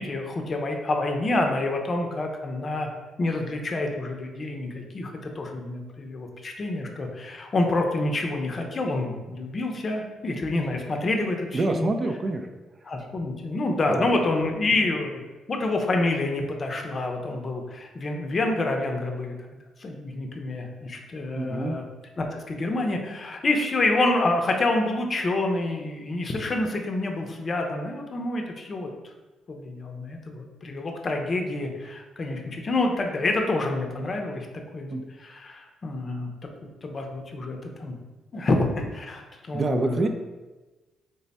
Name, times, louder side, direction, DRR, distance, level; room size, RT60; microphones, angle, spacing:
voice 1, 0.0-2.9 3.2-11.9 12.8-15.2 15.5-19.3 19.8-21.8 22.2-28.9 29.5-34.5 34.7-36.3 36.8-37.9 38.3-40.1, left 2 dB, 40° left, 3 dB, 0.5 m, -27 dB
voice 2, 11.5-12.5 14.0-14.1 21.3-21.8 34.9-35.0 39.5-40.1, right 2 dB, 40° right, 6 dB, 0.3 m, -26 dB
3.3 x 2.1 x 4.0 m, 1.2 s
cardioid pair, 90°, 0 cm